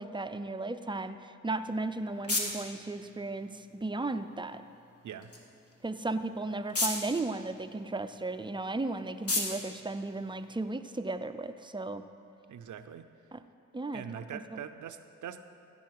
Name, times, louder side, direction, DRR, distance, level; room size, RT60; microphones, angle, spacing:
voice 1, 0.0-4.6 5.8-12.0 13.3-13.4 13.7-14.0 14.3-14.6, right 2 dB, 15° right, 10 dB, 0.5 m, -35 dB
sound 1, 1.5-10.9, left 2 dB, 45° left, 1.6 m, -39 dB
voice 2, 12.5-13.1 13.9-15.4, right 8 dB, 65° right, 10 dB, 0.6 m, -42 dB
15.0 x 5.5 x 4.8 m, 2.5 s
cardioid pair, 50°, 32 cm